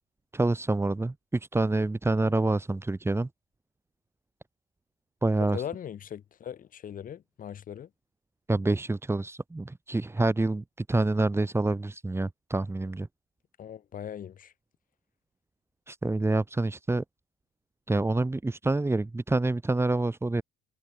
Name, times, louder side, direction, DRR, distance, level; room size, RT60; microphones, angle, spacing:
voice 1, 0.3-3.3 5.2-5.6 8.5-13.1 15.9-17.0 17.9-20.4, right 2 dB, 15° right, 4.0 m, -27 dB
voice 2, 5.5-7.9 13.6-14.5, left 9 dB, 50° left, 4.8 m, -39 dB
supercardioid pair, 85°, 18 cm